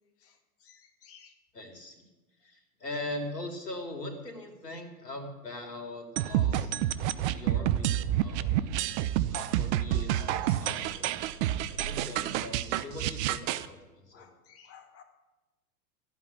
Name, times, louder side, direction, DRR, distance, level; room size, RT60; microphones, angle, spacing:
voice 1, 1.5-2.1 2.4-6.8 7.3-8.6 9.3-11.1 11.7-14.3, left 1 dB, 90° left, 5 dB, 2.9 m, -41 dB
sound 1, 6.2-13.7, right 12 dB, 45° right, 0.8 m, -29 dB
voice 2, 14.1-15.0, left 7 dB, 30° left, 4 dB, 2.2 m, -53 dB
13.5 x 9.0 x 8.6 m, 1.1 s
hypercardioid pair, 100°, 47 cm